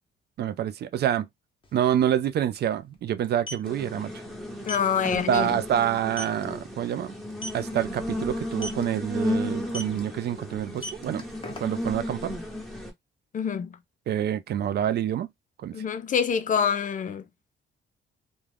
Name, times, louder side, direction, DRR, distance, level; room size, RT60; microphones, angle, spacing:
voice 1, 0.4-1.3 1.7-4.1 5.0-7.1 7.5-11.2 11.6-12.3 14.1-15.3 15.6-15.8, right 10 dB, 55° right, 0.4 m, -27 dB
sound 1, 1.6-1.7 2.0-2.2 3.2-3.7 4.6-4.9 5.3-5.5 5.8-5.9 6.2-6.4 7.3-7.7 8.5-8.8 9.7-10.0 10.6-11.9, left 1 dB, 25° left, 0.9 m, -36 dB
sound 2, 3.6-12.9, left 1 dB, ahead, 1.0 m, -34 dB
voice 2, 4.7-5.5 13.3-13.7 15.7-17.2, left 7 dB, 40° left, 0.5 m, -26 dB
2.3 x 2.2 x 3.3 m
cardioid pair, 90°, 20 cm